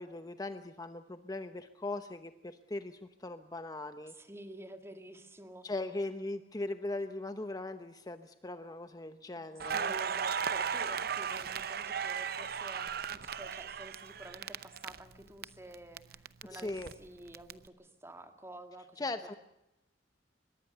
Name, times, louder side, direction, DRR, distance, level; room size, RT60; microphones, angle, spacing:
voice 1, 0.0-4.1 5.6-9.9 16.5-16.9 19.0-19.3, left 2 dB, 20° left, 9 dB, 0.9 m, -39 dB
voice 2, 4.1-5.7 9.4-19.1, right 1 dB, 15° right, 7 dB, 2.1 m, -50 dB
Crackle, 9.6-15.4 15.7-17.5, right 7 dB, 55° right, 0.8 m, -36 dB
23.5 x 21.0 x 6.8 m, 0.90 s
head